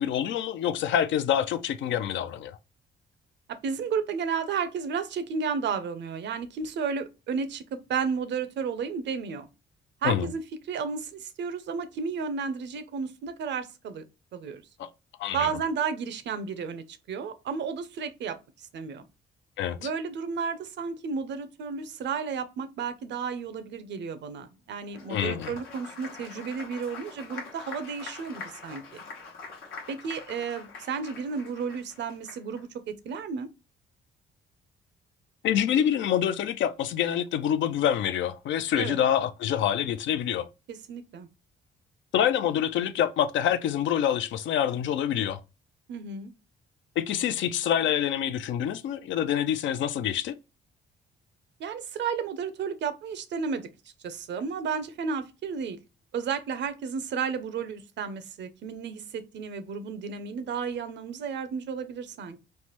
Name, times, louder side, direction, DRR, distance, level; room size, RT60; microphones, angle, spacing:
voice 1, 0.0-2.6 10.0-10.3 14.8-14.9 15.2-15.5 19.6-19.9 25.1-25.5 35.4-40.5 42.1-45.4 47.0-50.3, left 9 dB, 70° left, 0.4 m, -26 dB
voice 2, 3.6-7.6 7.9-9.5 10.0-14.0 14.3-14.6 15.3-19.1 19.8-29.0 29.9-33.5 38.8-39.0 40.7-41.3 45.9-46.3 51.6-53.7 54.0-55.8 56.1-62.4, right 6 dB, 65° right, 0.6 m, -32 dB
Applause, 24.8-32.6, left 4 dB, 85° left, 1.0 m, -44 dB
3.2 x 2.1 x 2.9 m
cardioid pair, 90°, 20 cm